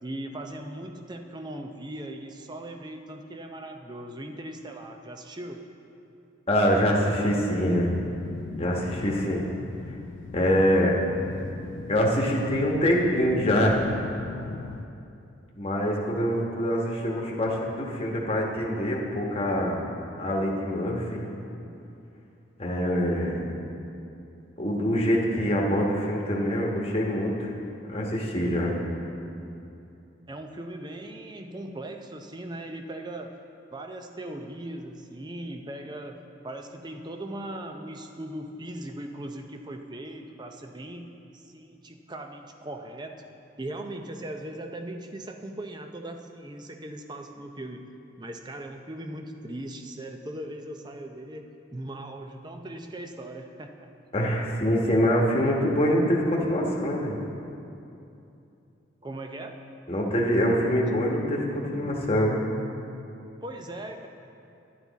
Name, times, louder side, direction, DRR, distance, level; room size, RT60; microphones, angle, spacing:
voice 1, 0.0-5.6 30.3-33.4 33.7-41.1 41.3-43.2 43.6-47.8 48.2-51.5 51.7-53.9 59.0-59.6 63.4-64.1, right 1 dB, 20° right, 5 dB, 0.5 m, -39 dB
voice 2, 6.5-7.9 8.6-9.5 9.9-10.0 10.3-11.0 11.9-13.9 15.6-19.9 20.2-21.3 22.6-23.4 24.6-27.5 27.8-28.7 54.1-57.2 59.9-62.5, equal, 30° left, -2 dB, 1.2 m, -25 dB
sound 1, 7.7-14.8, left 4 dB, 70° left, 0.4 m, -40 dB
11.0 x 10.5 x 4.1 m, 2.7 s
head